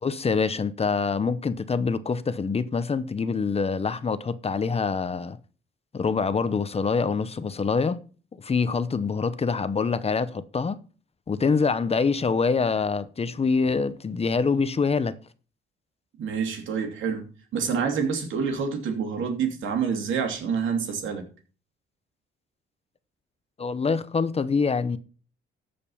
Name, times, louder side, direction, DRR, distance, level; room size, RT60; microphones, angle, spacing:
voice 1, 0.0-5.4 5.9-8.0 8.4-10.8 11.3-15.2 23.6-25.0, left 5 dB, 30° left, 0.8 m, -25 dB
voice 2, 16.2-17.3 17.5-21.2, right 6 dB, 75° right, 2.7 m, -27 dB
14.0 x 5.3 x 5.5 m
cardioid pair, 90°, 20 cm